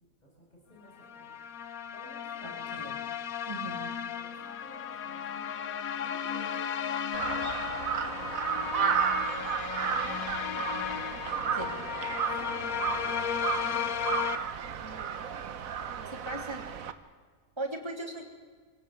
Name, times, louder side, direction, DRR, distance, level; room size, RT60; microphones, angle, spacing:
voice 1, 0.2-1.4 1.9-2.7 4.2-8.5 9.4-10.6 11.5-13.8 15.8-16.0, equal, 30° left, -3 dB, 6.6 m, -54 dB
sound 1, 1.0-14.4, left 8 dB, 85° left, 1.3 m, -35 dB
voice 2, 2.4-2.9 3.5-3.8 11.6-11.7 16.2-16.6 17.6-18.2, right 2 dB, 20° right, 2 dB, 3.1 m, -38 dB
Crow, 7.1-16.9, right 7 dB, 75° right, 1.5 m, -33 dB
25.0 x 16.5 x 8.8 m, 1.5 s
omnidirectional pair, 1.5 m